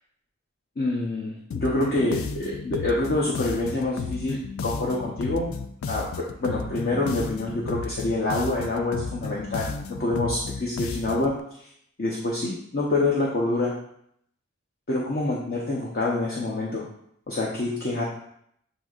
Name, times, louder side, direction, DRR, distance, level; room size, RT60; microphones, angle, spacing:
voice 1, 0.8-5.5 5.9-11.3 12.0-13.7 14.9-16.8 17.3-18.0, left 2 dB, 45° left, -4 dB, 0.7 m, -26 dB
sound 1, 1.5-11.4, left 4 dB, 70° left, 0.3 m, -34 dB
7.8 x 2.6 x 2.4 m, 0.71 s
head